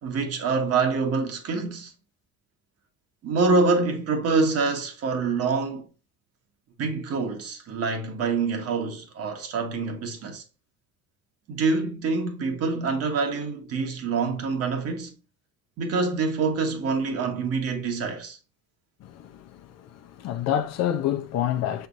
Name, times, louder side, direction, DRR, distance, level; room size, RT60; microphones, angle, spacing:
voice 1, 0.0-1.9 3.2-5.9 6.8-10.4 11.5-15.1 15.8-18.4, right 4 dB, 55° right, 1.4 m, -26 dB
voice 2, 19.0-19.5 20.2-21.9, left 10 dB, 60° left, 0.7 m, -27 dB
5.9 x 3.5 x 2.6 m
hypercardioid pair, 70°, 29 cm